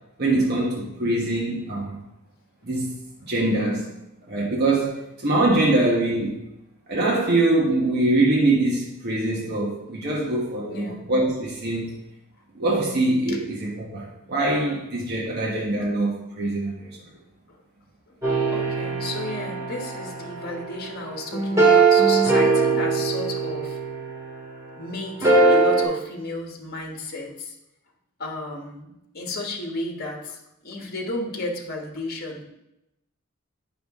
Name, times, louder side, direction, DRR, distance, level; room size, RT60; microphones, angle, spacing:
voice 1, 0.2-2.0 2.6-2.9 3.2-3.9 4.3-6.4 6.9-12.0 12.5-17.0, right 2 dB, 50° right, -3 dB, 1.2 m, -23 dB
sound 1, 18.2-24.5 25.2-25.8, right 4 dB, 15° right, 2.3 m, -21 dB
voice 2, 18.5-23.8 24.8-27.6 28.2-32.4, left 2 dB, 45° left, 1 dB, 1.3 m, -33 dB
8.7 x 5.9 x 3.6 m, 0.89 s
head